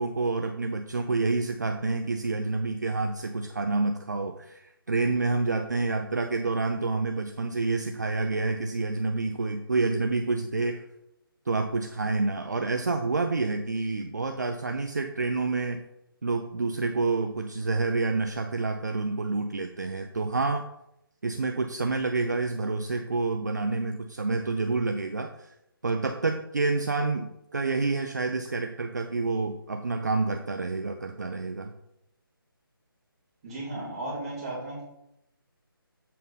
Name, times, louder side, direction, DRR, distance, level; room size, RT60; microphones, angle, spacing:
voice 1, 0.0-10.8 11.5-15.8 16.2-20.7 21.2-25.5 25.8-31.7, right 3 dB, 50° right, 5 dB, 0.5 m, -28 dB
voice 2, 33.4-34.8, right 2 dB, 15° right, -9 dB, 2.6 m, -35 dB
7.5 x 5.4 x 4.1 m, 0.81 s
hypercardioid pair, 180°, 12 cm